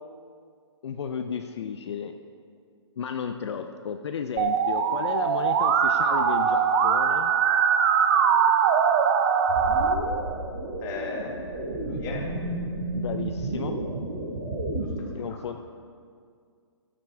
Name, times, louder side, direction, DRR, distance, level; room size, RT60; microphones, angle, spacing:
voice 1, 0.8-2.1 3.0-7.3 12.9-13.7 15.1-15.6, left 7 dB, 65° left, 7 dB, 0.6 m, -33 dB
Musical instrument, 4.4-9.9, right 7 dB, 35° right, 0.6 m, -22 dB
sound 1, 9.5-14.8, right 2 dB, 60° right, 2.2 m, -32 dB
voice 2, 10.8-12.3 14.8-15.4, left 4 dB, 25° left, 0 dB, 1.4 m, -37 dB
13.5 x 6.0 x 4.6 m, 2.2 s
hypercardioid pair, 145°, 15 cm